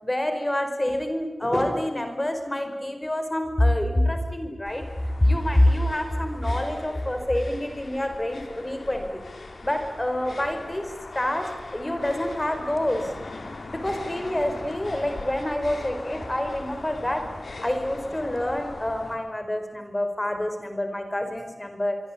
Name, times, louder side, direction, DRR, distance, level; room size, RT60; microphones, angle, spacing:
voice 1, 0.0-4.8 5.2-9.2 9.6-13.1 13.7-17.3 17.6-22.0, left 1 dB, 25° left, 7 dB, 4.8 m, -26 dB
sound 1, 4.6-19.2, left 3 dB, 85° left, 3.9 m, -40 dB
25.0 x 25.0 x 8.7 m, 1.1 s
wide cardioid pair, 60°, 0 cm